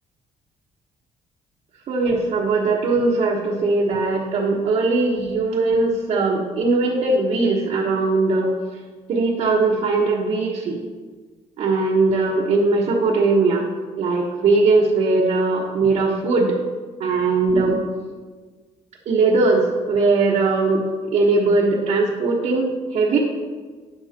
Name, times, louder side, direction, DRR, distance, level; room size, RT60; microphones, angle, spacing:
voice 1, 1.9-8.6 9.1-10.8 11.6-13.7 14.0-16.6 17.0-17.9 19.1-23.2, right 3 dB, 60° right, -3 dB, 1.3 m, -20 dB
12.5 x 9.7 x 2.9 m, 1.4 s
cardioid pair, 160°, 13 cm